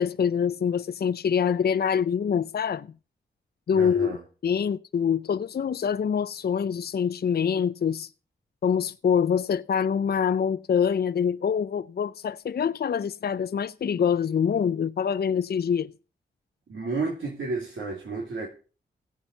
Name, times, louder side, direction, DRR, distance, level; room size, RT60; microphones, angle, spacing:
voice 1, 0.0-2.9 3.7-4.2 4.4-8.1 8.6-15.9, left 7 dB, 50° left, 0.5 m, -25 dB
voice 2, 3.7-4.2 16.7-18.5, right 3 dB, 75° right, 2.9 m, -31 dB
16.5 x 7.5 x 5.4 m
supercardioid pair, 40°, 21 cm